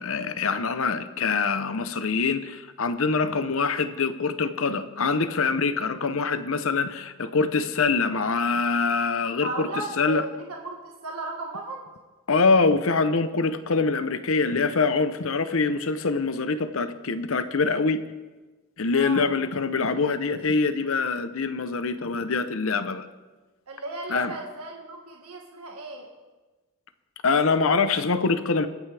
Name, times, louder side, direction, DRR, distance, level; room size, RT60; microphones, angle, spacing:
voice 1, 0.0-10.2 12.3-18.0 18.8-23.1 24.1-24.3 27.2-28.7, left 4 dB, 65° left, 11 dB, 0.8 m, -24 dB
voice 2, 9.4-11.8 18.9-19.3 23.7-26.1, right 2 dB, 85° right, 0 dB, 1.7 m, -35 dB
23.5 x 9.2 x 3.4 m, 1.2 s
head